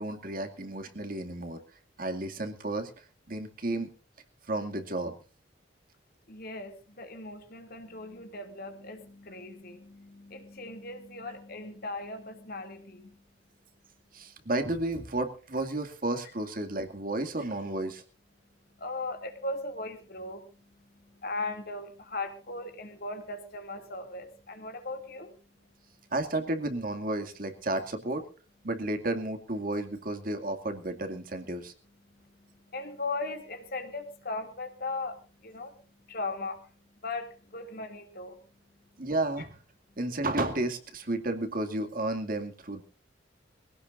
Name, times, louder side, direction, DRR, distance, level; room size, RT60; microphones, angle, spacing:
voice 1, 0.0-1.6 2.0-2.9 3.3-3.9 4.5-5.1 14.1-18.0 26.1-28.2 28.6-31.7 39.0-39.6 40.0-42.8, right 2 dB, 50° right, 5 dB, 2.3 m, -32 dB
voice 2, 6.3-13.3 18.4-26.1 31.9-39.1 39.4-39.5 39.9-40.0, left 2 dB, 50° left, 6 dB, 2.6 m, -39 dB
22.5 x 17.0 x 2.6 m, 0.36 s
head